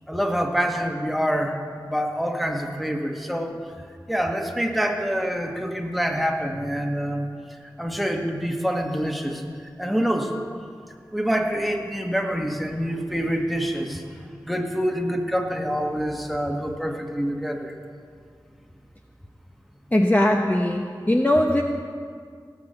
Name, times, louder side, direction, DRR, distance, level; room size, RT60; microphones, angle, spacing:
voice 1, 0.1-1.6 1.8-7.3 7.8-10.4 11.1-17.7, equal, ahead, 3 dB, 1.7 m, -26 dB
voice 2, 19.9-21.6, left 1 dB, 20° left, 2 dB, 1.0 m, -20 dB
17.5 x 7.2 x 8.0 m, 2.1 s
wide cardioid pair, 40°, 8 cm